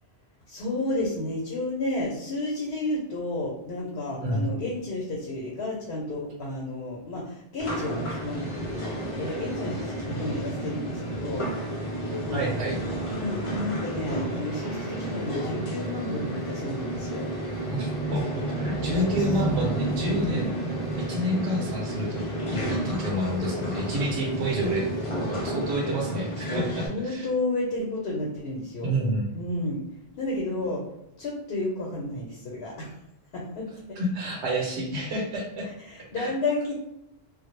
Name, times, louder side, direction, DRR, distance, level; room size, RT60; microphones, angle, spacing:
voice 1, 0.5-11.5 12.2-12.5 13.1-17.3 19.1-19.2 20.3-20.5 26.9-29.0 29.3-29.8 30.2-30.8 31.2-32.9 33.3-33.7 35.9-36.7, left 2 dB, 75° left, -3 dB, 0.8 m, -31 dB
voice 2, 4.2-4.5 12.3-12.8 17.7-20.6 20.9-22.2 22.5-24.9 25.3-27.3 28.8-29.3 34.0-35.7 36.2-36.3, equal, 85° right, -2 dB, 0.9 m, -29 dB
sound 1, 7.6-26.9, right 1 dB, 45° left, 0.4 m, -31 dB
sound 2, 14.7-25.7, right 7 dB, 30° right, 0.8 m, -48 dB
2.0 x 2.0 x 3.0 m, 0.80 s
omnidirectional pair, 1.1 m